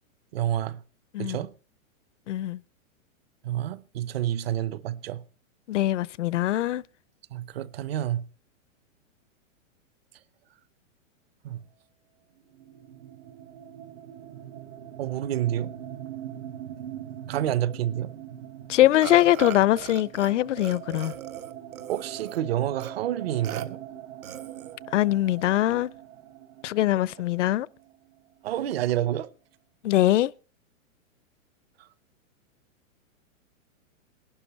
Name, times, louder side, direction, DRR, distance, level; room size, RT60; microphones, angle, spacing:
voice 1, 0.3-0.8 1.2-1.5 3.4-5.2 7.3-8.3 11.4-11.6 15.0-15.7 17.3-18.1 21.9-23.8 28.4-29.3, right 12 dB, 45° right, 0.8 m, -28 dB
voice 2, 2.3-2.6 5.7-6.8 18.7-21.1 24.9-25.9 26.6-27.7 29.8-30.3, left 14 dB, 60° left, 0.6 m, -22 dB
sound 1, 12.5-28.1, right 11 dB, 70° right, 2.1 m, -42 dB
Burping eructation, 19.0-20.3 20.6-22.4 22.8-22.9 23.4-23.7 24.2-24.8, right 9 dB, 85° right, 1.6 m, -38 dB
21.5 x 12.0 x 3.1 m
hypercardioid pair, 165°, 41 cm